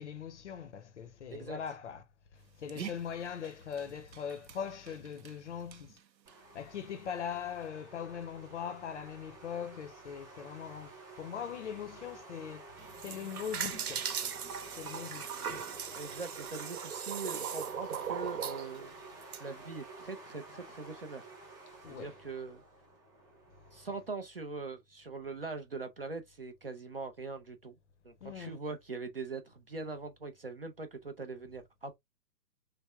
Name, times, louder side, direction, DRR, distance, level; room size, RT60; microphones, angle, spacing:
voice 1, 0.0-2.1 2.6-6.0 6.5-10.9 11.2-12.6 13.0-15.6 21.8-22.3 28.2-28.6, left 8 dB, 45° left, 0.6 m, -41 dB
Dog, 2.4-7.7, right 9 dB, 90° right, 0.7 m, -51 dB
sound 1, 6.3-24.0, right 3 dB, 5° right, 1.0 m, -51 dB
sound 2, 12.8-19.4, right 8 dB, 60° right, 0.9 m, -38 dB
voice 2, 15.9-18.9 19.4-21.3 21.9-22.6 23.7-27.7 28.0-32.0, right 4 dB, 40° right, 0.4 m, -42 dB
3.3 x 2.1 x 3.3 m
hypercardioid pair, 135°, 50 cm